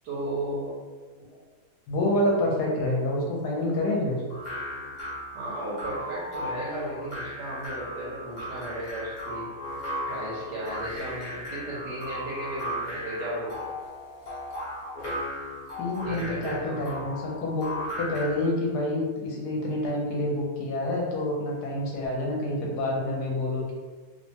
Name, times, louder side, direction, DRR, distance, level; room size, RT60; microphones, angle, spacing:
voice 1, 0.0-0.8 5.3-9.5 10.0-13.7 16.0-16.8, right 1 dB, 70° right, -7 dB, 1.3 m, -34 dB
voice 2, 1.9-4.2 15.8-17.7 18.0-23.7, left 1 dB, 70° left, -3 dB, 1.2 m, -27 dB
sound 1, 4.3-18.5, left 1 dB, 35° left, 0.8 m, -36 dB
3.1 x 2.1 x 2.7 m, 1.3 s
omnidirectional pair, 1.9 m